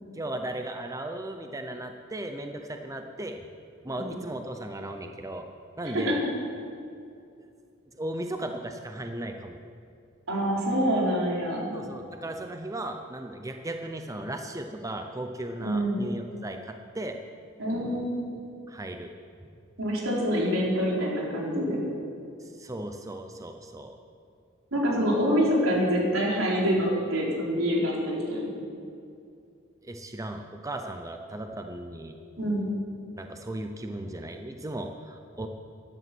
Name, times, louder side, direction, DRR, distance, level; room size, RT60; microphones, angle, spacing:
voice 1, 0.1-3.5 3.8-5.5 5.8-6.2 7.9-9.6 11.7-17.2 18.7-19.1 19.4-19.5 22.4-24.0 29.8-32.2 33.2-35.5, right 1 dB, 15° right, 5 dB, 0.7 m, -36 dB
voice 2, 5.9-6.3 10.3-11.7 15.6-16.0 17.6-18.3 19.8-21.8 24.7-28.6 32.4-32.7, equal, 85° right, -3 dB, 4.1 m, -26 dB
15.0 x 11.0 x 6.2 m, 2.5 s
head